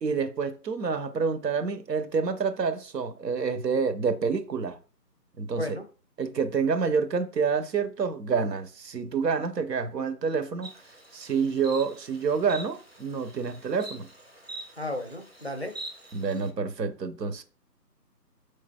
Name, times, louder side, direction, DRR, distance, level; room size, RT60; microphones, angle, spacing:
voice 1, 0.0-4.8 5.4-5.8 6.2-10.7 11.1-14.1 16.1-17.4, right 5 dB, 75° right, 0.7 m, -28 dB
Insect, 10.6-16.5, right 2 dB, 40° right, 0.5 m, -45 dB
voice 2, 14.8-15.7, left 1 dB, 45° left, 0.4 m, -33 dB
4.5 x 3.2 x 2.2 m
figure-of-eight pair, 155°, 50 cm